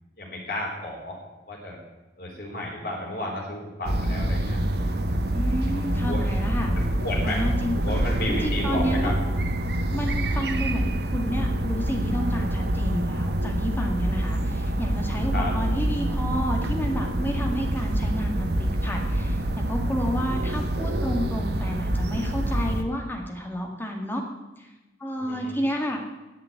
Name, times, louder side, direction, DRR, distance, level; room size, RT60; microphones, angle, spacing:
voice 1, 0.2-1.2 1.5-1.8 2.2-5.1 5.7-6.2 6.7-7.4 7.8-9.1 15.3-15.6 25.2-25.5, left 1 dB, 55° left, -2 dB, 4.1 m, -33 dB
sound 1, 3.8-22.8, right 1 dB, 65° right, 1.0 m, -26 dB
voice 2, 5.3-6.7 7.2-7.7 8.3-9.1 9.9-24.2 24.6-24.7 25.0-26.0, equal, 10° left, 2 dB, 1.9 m, -30 dB
10.5 x 7.5 x 9.6 m, 1.1 s
head